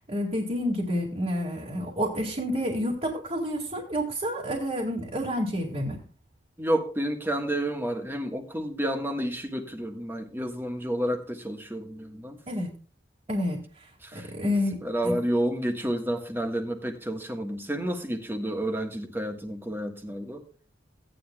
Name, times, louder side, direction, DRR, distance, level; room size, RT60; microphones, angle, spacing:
voice 1, 0.1-6.0 12.5-12.7 13.3-15.1, equal, 35° right, 2.2 m, -29 dB
voice 2, 6.6-12.4 14.0-14.3 14.8-20.4, right 1 dB, 10° right, 1.5 m, -30 dB
17.0 x 9.8 x 2.3 m
head